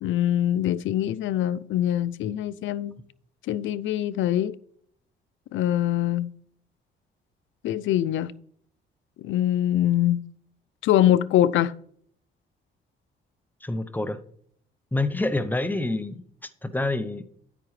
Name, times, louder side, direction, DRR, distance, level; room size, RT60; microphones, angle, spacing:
voice 1, 0.0-3.0 3.5-4.5 5.5-6.3 7.6-8.3 9.2-10.2 10.8-11.7, left 12 dB, 75° left, 0.5 m, -23 dB
voice 2, 13.6-14.2 14.9-17.3, left 2 dB, 10° left, 0.8 m, -27 dB
9.8 x 8.6 x 3.2 m
cardioid pair, 90°, 20 cm